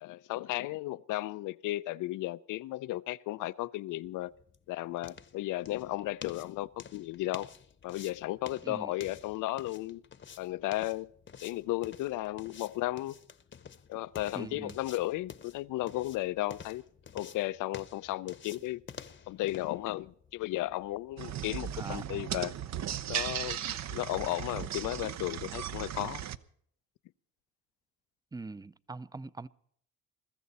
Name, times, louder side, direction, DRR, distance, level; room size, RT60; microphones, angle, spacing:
voice 1, 0.0-4.3 4.7-7.5 7.8-10.0 10.4-11.1 11.4-13.2 13.9-16.8 17.1-18.8 19.3-22.5 23.1-23.6 23.9-26.2, left 17 dB, 90° left, 0.6 m, -34 dB
sound 1, 3.9-21.7, left 7 dB, 40° left, 0.9 m, -50 dB
voice 2, 14.3-14.8 21.7-22.1 28.3-29.5, right 3 dB, 15° right, 0.5 m, -42 dB
sound 2, 21.2-26.4, right 10 dB, 65° right, 0.8 m, -36 dB
22.0 x 14.0 x 4.1 m
cardioid pair, 90°, 30 cm